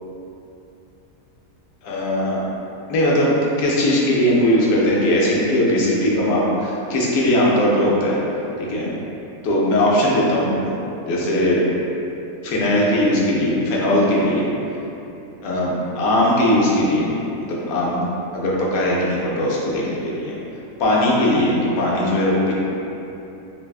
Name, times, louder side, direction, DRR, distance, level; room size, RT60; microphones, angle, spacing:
voice 1, 1.8-2.4 2.9-3.3 3.6-8.2 8.6-8.9 9.4-10.7 11.1-11.6 12.4-14.4 15.4-17.1 17.5-18.0 18.3-20.3 20.8-22.5, left 1 dB, 85° left, -5 dB, 1.1 m, -19 dB
3.2 x 2.2 x 2.3 m, 2.9 s
omnidirectional pair, 1.5 m